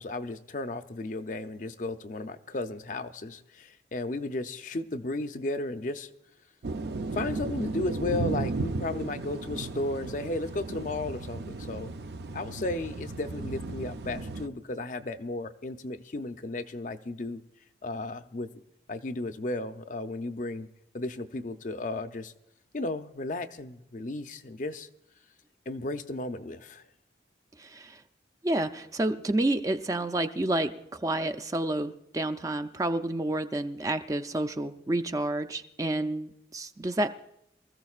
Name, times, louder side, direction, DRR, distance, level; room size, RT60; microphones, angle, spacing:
voice 1, 0.0-6.1 7.1-11.9 12.3-17.4 17.8-18.5 18.9-20.7 20.9-22.3 22.7-24.9 25.7-26.9, left 2 dB, 45° left, 9 dB, 0.6 m, -34 dB
sound 1, 6.6-14.5, right 3 dB, 65° right, 0.5 m, -35 dB
voice 2, 27.6-28.0 28.4-37.1, right 1 dB, 20° right, 8 dB, 0.4 m, -29 dB
24.5 x 14.5 x 2.4 m, 0.82 s
head